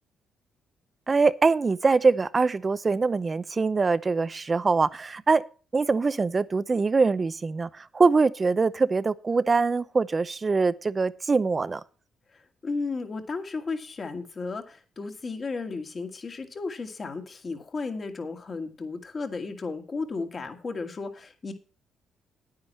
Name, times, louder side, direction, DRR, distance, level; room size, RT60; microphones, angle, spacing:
voice 1, 1.1-5.4 5.7-11.8, right 4 dB, 30° right, 0.6 m, -23 dB
voice 2, 12.6-21.5, left 4 dB, 40° left, 2.1 m, -34 dB
9.8 x 9.5 x 4.2 m
cardioid pair, 90°, 0 cm